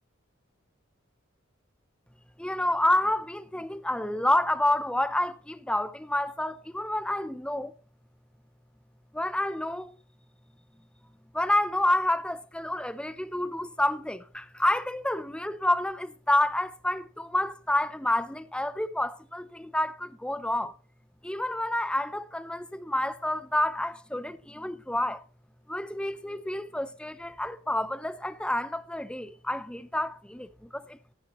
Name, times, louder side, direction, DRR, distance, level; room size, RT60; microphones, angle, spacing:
voice 1, 2.4-7.7 9.1-10.0 11.3-20.7 21.2-25.2 25.7-31.0, left 1 dB, 5° left, 0.6 m, -29 dB
15.0 x 10.5 x 3.0 m
head